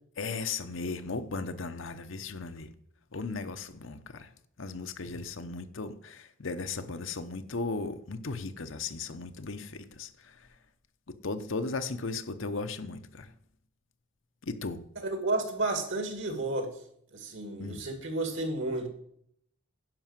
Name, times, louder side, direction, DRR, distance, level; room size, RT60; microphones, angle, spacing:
voice 1, 0.2-2.7 3.1-4.3 4.6-10.5 11.1-13.3 14.4-14.8 17.6-17.8, left 3 dB, 65° left, 0.8 m, -36 dB
voice 2, 15.0-16.8 17.1-18.9, right 2 dB, 65° right, 2.3 m, -32 dB
11.0 x 5.5 x 7.4 m
head